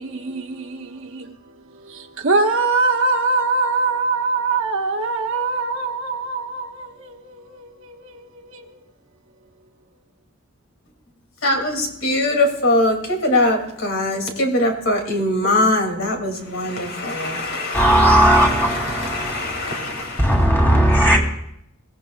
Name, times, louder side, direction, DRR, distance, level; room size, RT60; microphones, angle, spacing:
voice 1, 0.0-1.3 1.9-8.6, right 3 dB, 65° right, 1.3 m, -23 dB
voice 2, 11.4-20.4 20.9-21.0, left 1 dB, 65° left, 2.6 m, -22 dB
voice 3, 17.7-19.3 20.2-21.2, right 1 dB, 10° left, 2.7 m, -16 dB
22.0 x 16.0 x 2.4 m
head